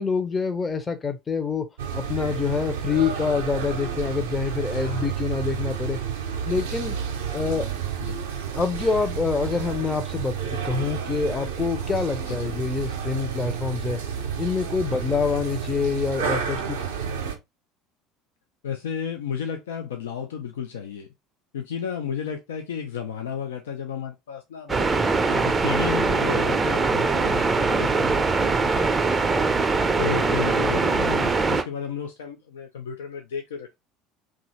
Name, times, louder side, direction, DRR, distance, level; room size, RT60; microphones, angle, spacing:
voice 1, 0.0-1.7 1.9-6.0 6.4-6.9 7.3-7.7 8.5-14.0 14.4-16.8 30.0-30.4, left 5 dB, 25° left, 0.6 m, -26 dB
sound 1, 1.8-17.4, right 7 dB, 70° right, 0.5 m, -30 dB
voice 2, 4.7-5.1 8.0-8.3 12.3-12.6 14.9-15.2 18.6-21.1 21.5-24.9 25.2-29.4 30.0-33.8, left 7 dB, 70° left, 0.4 m, -33 dB
sound 2, 24.7-31.6, right 4 dB, 20° right, 0.5 m, -22 dB
2.7 x 2.4 x 3.0 m
figure-of-eight pair, 65°, 0 cm